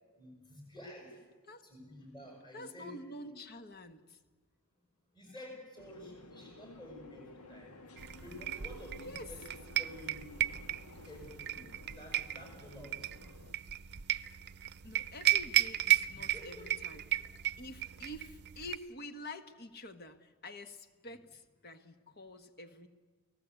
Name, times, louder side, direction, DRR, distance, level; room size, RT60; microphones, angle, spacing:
voice 1, 0.2-1.1 1.6-2.9 3.2-3.4 5.1-7.7 8.2-9.4 9.8-10.2 11.1-11.7 12.0-13.3 16.1-16.9, left 1 dB, 20° left, 1 dB, 7.0 m, -50 dB
voice 2, 2.5-4.2 9.0-9.3 14.8-17.1 17.6-22.9, left 1 dB, 45° left, 9 dB, 1.5 m, -48 dB
sound 1, 5.8-13.5, left 2 dB, 80° left, 1.5 m, -54 dB
sound 2, 8.0-18.8, right 14 dB, 50° right, 0.7 m, -35 dB
29.5 x 18.5 x 8.3 m, 1.3 s
head